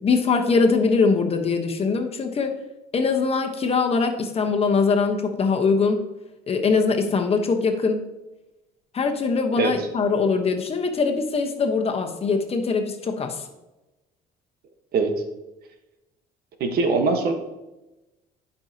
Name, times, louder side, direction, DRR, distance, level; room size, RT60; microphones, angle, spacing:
voice 1, 0.0-2.6 2.9-6.0 6.5-8.0 8.9-13.4, left 4 dB, 35° left, 4 dB, 1.1 m, -22 dB
voice 2, 9.6-9.9 14.9-15.1 16.6-17.3, right 4 dB, 65° right, 5 dB, 1.3 m, -22 dB
12.0 x 5.6 x 2.8 m, 1.0 s
cardioid pair, 110°, 17 cm